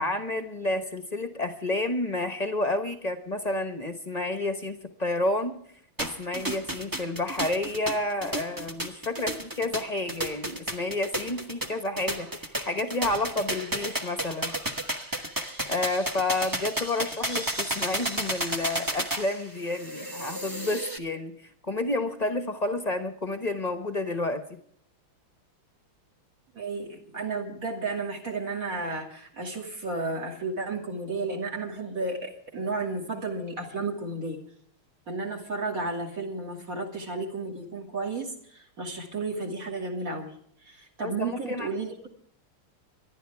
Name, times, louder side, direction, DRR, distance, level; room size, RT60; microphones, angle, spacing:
voice 1, 0.0-5.6 6.0-14.5 15.7-21.4 21.6-24.6 41.0-41.7, left 2 dB, 25° left, 7 dB, 0.8 m, -30 dB
sound 1, 6.0-21.0, right 1 dB, 20° right, 0.6 m, -32 dB
voice 2, 26.5-34.4 35.1-40.3 40.6-42.1, right 3 dB, 40° right, 2 dB, 2.9 m, -33 dB
25.5 x 11.5 x 3.4 m, 0.66 s
omnidirectional pair, 2.4 m